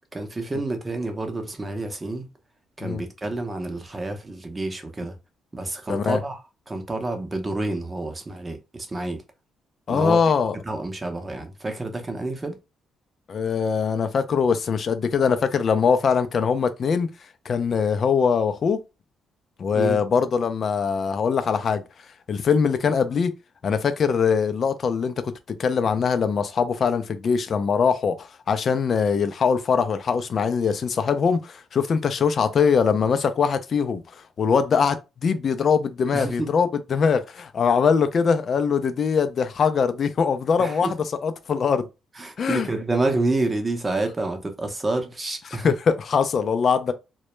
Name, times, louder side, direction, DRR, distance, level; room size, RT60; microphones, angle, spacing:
voice 1, 0.1-2.3 2.8-5.1 5.5-6.4 6.7-9.2 9.9-10.2 10.5-12.5 19.7-20.0 36.1-36.5 40.6-40.9 42.2-45.7, right 2 dB, 25° right, 0.6 m, -28 dB
voice 2, 5.9-6.2 9.9-10.6 13.3-17.1 17.5-18.8 19.6-21.8 22.3-23.3 23.6-34.0 34.4-41.9 42.4-42.7 45.6-46.9, left 6 dB, 50° left, 0.4 m, -22 dB
2.1 x 2.0 x 3.0 m
cardioid pair, 90°, 0 cm